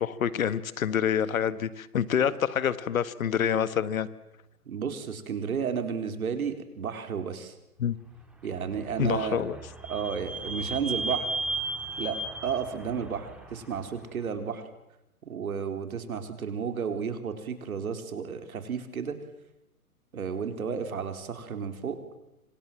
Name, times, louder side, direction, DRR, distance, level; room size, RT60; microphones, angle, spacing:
voice 1, 0.0-4.1 7.8-8.0 9.0-9.6, left 8 dB, 65° left, 16 dB, 1.7 m, -27 dB
voice 2, 4.7-7.5 8.4-9.4 9.9-11.3 12.0-12.2 12.4-14.6 15.3-19.2 20.1-22.0, right 6 dB, 70° right, 8 dB, 4.3 m, -32 dB
Vehicle / Squeak, 8.4-14.0, right 2 dB, ahead, 4.0 m, -35 dB
28.0 x 26.0 x 7.6 m, 0.88 s
hypercardioid pair, 140°, 45 cm